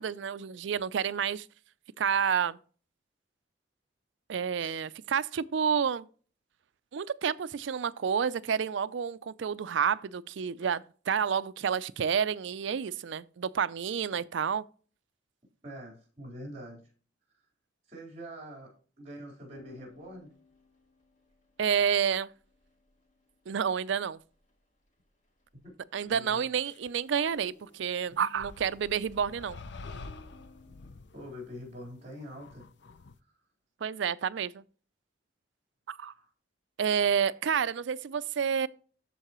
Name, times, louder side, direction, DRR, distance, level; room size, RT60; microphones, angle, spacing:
voice 1, 0.0-1.5 2.0-2.6 4.3-6.1 6.9-14.6 21.6-22.3 23.5-24.2 25.9-29.6 33.8-34.6 35.9-36.1 36.8-38.7, right 7 dB, 70° right, 0.4 m, -29 dB
voice 2, 15.6-16.8 17.9-20.3 25.6-25.7 26.0-26.4 28.1-28.3 31.1-32.7 36.1-36.3, equal, 35° right, 4.0 m, -45 dB
sound 1, 19.5-24.5 24.8-24.9 25.2-25.7 26.0-26.7 27.0-29.3 29.7-30.9, left 1 dB, 40° left, 2.0 m, -58 dB
sound 2, 26.6-26.9 28.4-33.2, left 3 dB, 60° left, 0.6 m, -48 dB
13.0 x 4.7 x 3.0 m
head